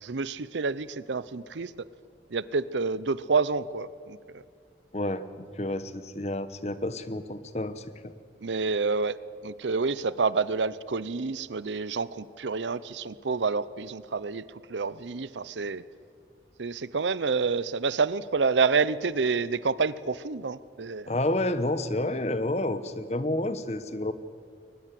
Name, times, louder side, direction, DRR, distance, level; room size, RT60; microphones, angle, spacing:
voice 1, 0.0-1.7 2.3-4.2 8.4-9.2 9.4-14.4 14.7-15.8 16.6-21.1, right 4 dB, 90° right, 18 dB, 0.7 m, -28 dB
voice 2, 4.9-7.8 21.1-24.1, left 1 dB, 35° left, 13 dB, 1.0 m, -30 dB
22.0 x 20.0 x 7.7 m, 2.2 s
head